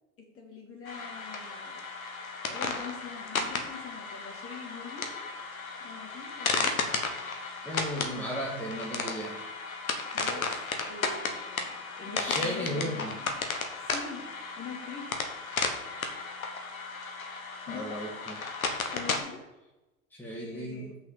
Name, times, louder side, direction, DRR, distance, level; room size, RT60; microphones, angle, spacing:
voice 1, 0.2-1.8 2.4-5.2 5.8-6.8 10.1-13.4 13.7-14.2 14.5-15.1 17.7-18.0 18.9-19.4 20.3-21.0, left 5 dB, 30° left, 0 dB, 3.1 m, -44 dB
sound 1, 0.9-19.2, left 4 dB, 80° left, 1.5 m, -34 dB
voice 2, 7.6-9.4 12.2-13.2 17.7-18.4 20.1-20.8, equal, 5° left, -3 dB, 2.0 m, -35 dB
6.2 x 5.7 x 6.9 m, 1.0 s
figure-of-eight pair, 85°, 41 cm